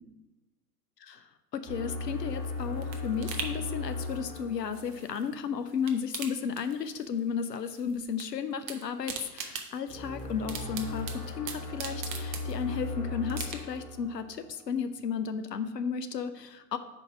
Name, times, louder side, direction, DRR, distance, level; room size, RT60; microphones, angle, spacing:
voice 1, 1.5-16.8, left 7 dB, 85° left, 9 dB, 0.6 m, -34 dB
sound 1, 1.6-5.4 9.9-14.7, left 3 dB, 15° left, 1.3 m, -37 dB
sound 2, 2.1-5.4 5.7-7.2 7.4-8.3 8.5-12.9 13.3-13.9 14.3-14.4, right 7 dB, 30° right, 0.7 m, -41 dB
5.3 x 4.5 x 5.8 m, 1.1 s
figure-of-eight pair, 105°, 48 cm